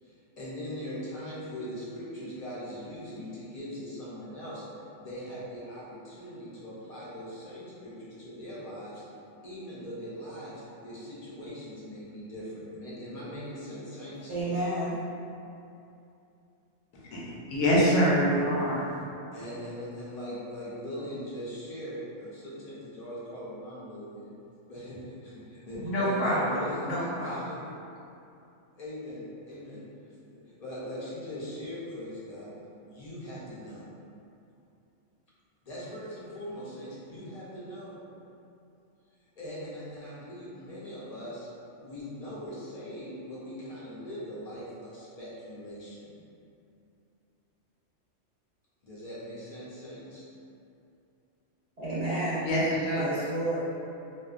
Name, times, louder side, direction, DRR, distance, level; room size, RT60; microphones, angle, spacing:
voice 1, 0.0-4.7 5.0-9.0 9.4-14.3 19.3-24.3 24.7-27.6 28.7-29.8 30.3-32.5 32.8-33.9 35.6-38.0 39.4-41.5 41.8-46.2 48.8-50.2, equal, 45° left, -9 dB, 0.5 m, -40 dB
voice 2, 14.3-15.0 51.8-52.5 53.0-53.6, right 2 dB, 55° right, -13 dB, 0.4 m, -30 dB
voice 3, 16.9-19.0 25.8-27.4 52.5-53.1, equal, 80° left, -6 dB, 1.0 m, -26 dB
2.5 x 2.2 x 2.4 m, 2.7 s
omnidirectional pair, 1.3 m